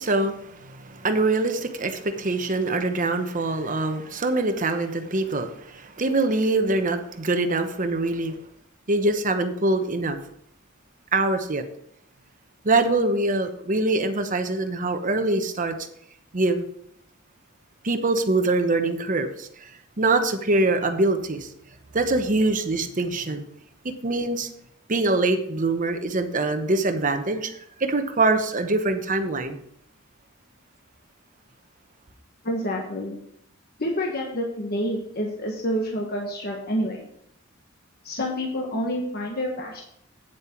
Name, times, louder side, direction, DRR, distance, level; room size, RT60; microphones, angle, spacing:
voice 1, 0.0-8.4 8.9-10.2 11.1-11.6 12.6-15.8 16.3-16.7 17.8-19.7 20.0-21.5 21.9-23.4 23.8-24.5 24.9-29.6, right 2 dB, 40° right, 7 dB, 1.0 m, -24 dB
voice 2, 32.4-33.1 33.8-37.1 38.0-39.8, equal, 50° left, -1 dB, 1.4 m, -28 dB
9.2 x 7.6 x 4.5 m, 0.72 s
head